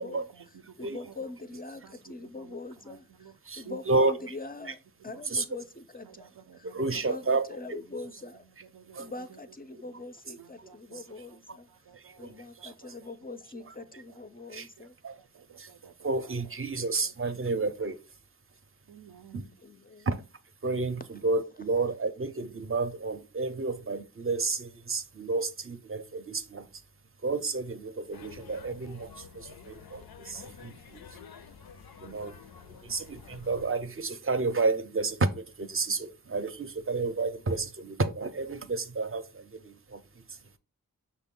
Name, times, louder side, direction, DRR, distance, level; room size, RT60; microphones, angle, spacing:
voice 1, 0.0-3.4 3.6-4.3 4.6-4.7 5.1-5.5 6.0-7.3 7.8-9.4 9.7-10.0 10.4-14.3 14.8-14.9 15.2-16.5 16.8-17.5 18.9-19.6, right 8 dB, 80° right, 0.5 m, -53 dB
voice 2, 0.8-4.8 5.0-8.5 9.0-11.7 12.2-14.9 19.6-20.1, left 3 dB, 25° left, 0.4 m, -43 dB
voice 3, 3.5-4.3 5.3-5.4 6.6-7.8 8.9-9.1 11.9-12.3 12.6-12.7 14.5-14.7 15.0-15.2 15.6-15.7 16.0-18.0 19.3-19.4 20.1-20.2 20.6-26.7 27.2-31.0 32.0-32.4 32.8-40.6, right 3 dB, 35° right, 0.5 m, -31 dB
sound 1, 28.1-33.7, left 7 dB, 90° left, 0.5 m, -50 dB
5.8 x 2.2 x 3.6 m
wide cardioid pair, 60°, 35 cm